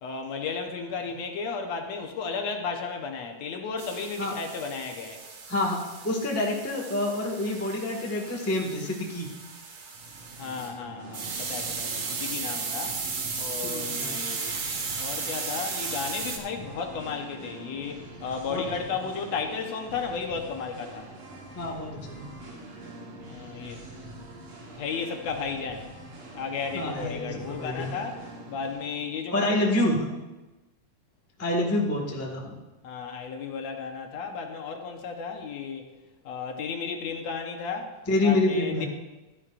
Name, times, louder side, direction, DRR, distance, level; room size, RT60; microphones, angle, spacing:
voice 1, 0.0-5.2 10.4-13.0 13.4-14.5 15.0-21.1 23.3-23.8 24.8-25.9 26.3-29.7 32.8-35.9 36.2-38.9, left 5 dB, 70° left, 3 dB, 2.0 m, -34 dB
sound 1, 3.8-10.7 11.1-16.4, right 5 dB, 60° right, 2.3 m, -35 dB
voice 2, 5.5-9.3 13.6-14.3 18.5-18.7 21.5-22.2 26.7-27.9 29.3-30.0 31.4-32.5 38.1-38.9, left 1 dB, 10° left, -1 dB, 0.8 m, -27 dB
Singing, 9.9-29.0, right 1 dB, 85° right, 3.8 m, -44 dB
14.5 x 12.5 x 2.5 m, 1.1 s
omnidirectional pair, 3.4 m